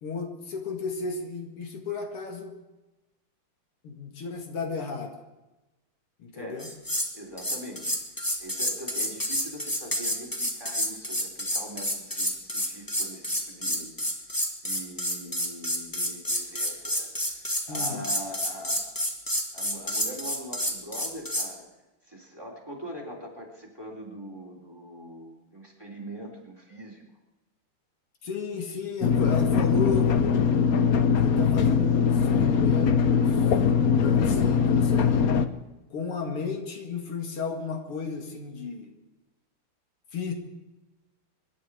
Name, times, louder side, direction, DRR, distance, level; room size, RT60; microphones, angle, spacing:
voice 1, 0.0-2.6 3.8-5.1 6.2-6.7 17.7-18.0 28.2-30.5 31.2-33.4 34.0-35.2 35.9-38.9 40.1-40.3, left 4 dB, 90° left, 4 dB, 3.0 m, -33 dB
voice 2, 6.3-6.6 7.1-8.0 8.4-13.9 14.6-18.9 19.5-21.7 22.0-27.0, equal, 10° right, 0 dB, 3.3 m, -42 dB
sound 1, 6.6-7.1 7.4-21.5, equal, 10° left, 1.7 m, -29 dB
sound 2, 29.0-35.5, left 6 dB, 60° left, 1.0 m, -22 dB
24.5 x 11.5 x 4.9 m, 1.0 s
omnidirectional pair, 2.4 m